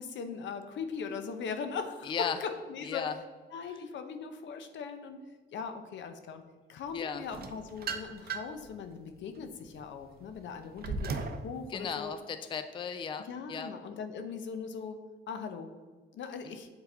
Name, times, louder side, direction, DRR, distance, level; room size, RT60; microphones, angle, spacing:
voice 1, 0.0-2.1 2.4-3.0 3.5-5.2 5.5-6.4 6.7-12.1 13.3-15.0 15.3-15.7 16.1-16.7, left 5 dB, 70° left, 8 dB, 0.7 m, -40 dB
voice 2, 2.0-2.4 2.8-3.1 3.7-3.8 6.9-7.2 11.7-13.7 16.4-16.6, left 6 dB, 25° left, 9 dB, 0.4 m, -36 dB
sound 1, 7.3-8.7 9.2-11.5, right 4 dB, 50° right, 0.6 m, -37 dB
7.1 x 3.8 x 3.8 m, 1.4 s
cardioid pair, 90°, 20 cm